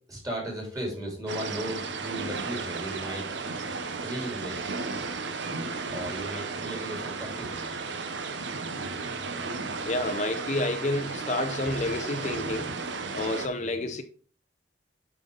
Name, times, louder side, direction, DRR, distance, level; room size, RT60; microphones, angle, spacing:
voice 1, 0.1-3.3 4.0-4.7 5.9-7.7 13.6-13.8, right 1 dB, 20° right, 3.6 m, -36 dB
sound 1, 1.3-13.5, right 4 dB, 70° right, 0.9 m, -34 dB
voice 2, 9.8-12.7 13.1-14.0, left 2 dB, 40° left, 0.6 m, -29 dB
9.0 x 5.7 x 3.9 m
head